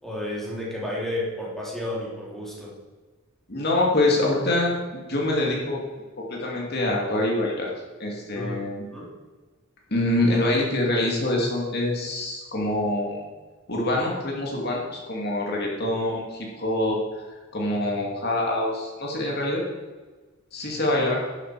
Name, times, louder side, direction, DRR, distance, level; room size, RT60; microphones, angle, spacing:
voice 1, 0.0-2.7 8.4-9.1, left 1 dB, ahead, -6 dB, 3.5 m, -32 dB
voice 2, 3.5-4.7 5.1-5.8 6.2-7.7 8.0-8.9 9.9-13.3 13.7-17.2 17.5-19.6 20.5-21.2, left 1 dB, 50° left, -2 dB, 2.5 m, -25 dB
12.0 x 11.5 x 4.8 m, 1.3 s
head